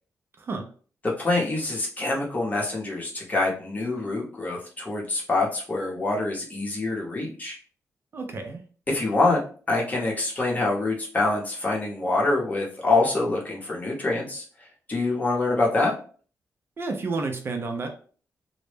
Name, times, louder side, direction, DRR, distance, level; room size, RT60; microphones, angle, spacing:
voice 1, 0.4-0.7 8.1-8.6 16.8-17.9, right 3 dB, 40° right, 4 dB, 0.4 m, -30 dB
voice 2, 1.2-7.6 8.9-9.4 9.7-14.4 14.9-15.9, left 2 dB, 25° left, -2 dB, 0.7 m, -25 dB
2.1 x 2.0 x 3.1 m, 0.42 s
wide cardioid pair, 135°, 6 cm